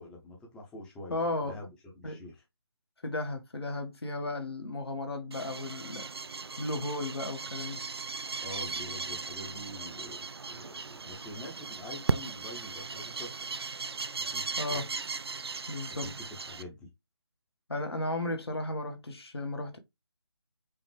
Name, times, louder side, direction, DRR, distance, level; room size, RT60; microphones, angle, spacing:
voice 1, 0.0-2.4 8.3-10.2 10.5-13.7 14.2-14.8 15.9-16.9, left 1 dB, 5° left, 0.8 m, -45 dB
voice 2, 1.1-1.6 2.0-2.2 3.0-6.1 6.6-7.9 14.6-14.9 15.7-16.1 17.7-19.8, left 2 dB, 70° left, 1.4 m, -34 dB
sound 1, 5.3-16.6, right 4 dB, 65° right, 0.5 m, -37 dB
5.2 x 2.5 x 3.3 m
figure-of-eight pair, 150°, 14 cm